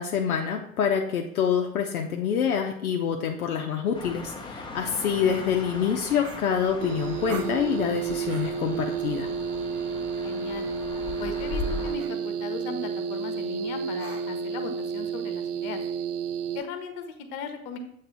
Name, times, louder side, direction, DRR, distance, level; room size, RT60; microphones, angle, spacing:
voice 1, 0.0-9.3, left 7 dB, 75° left, 2 dB, 0.7 m, -26 dB
sound 1, 3.9-11.9, left 3 dB, 10° left, 0.8 m, -38 dB
voice 2, 4.9-5.4 10.2-10.7 11.2-15.8 16.5-17.8, left 5 dB, 50° left, 7 dB, 1.0 m, -38 dB
sound 2, 5.3-5.5 6.2-6.9 7.3-7.6 8.2-8.6 10.1-10.3 11.1-11.4 12.0-12.2 14.0-14.5, right 4 dB, 80° right, 0.9 m, -42 dB
sound 3, 6.8-16.6, right 6 dB, 60° right, 0.5 m, -31 dB
7.8 x 3.2 x 4.5 m, 0.70 s
figure-of-eight pair, 75°, 43 cm